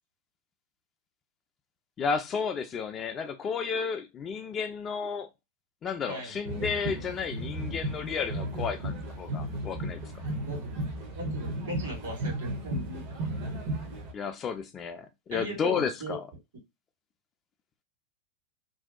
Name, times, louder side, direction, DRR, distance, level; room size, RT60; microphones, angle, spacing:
voice 1, 2.0-5.3 5.8-10.0 14.1-16.2, left 6 dB, 25° left, 0.4 m, -32 dB
sound 1, 6.4-14.1, right 1 dB, 45° right, 0.7 m, -34 dB
voice 2, 10.4-10.7 11.1-13.2 15.3-16.2, right 1 dB, 60° right, 1.5 m, -38 dB
2.6 x 2.1 x 2.4 m
figure-of-eight pair, 90°, 0 cm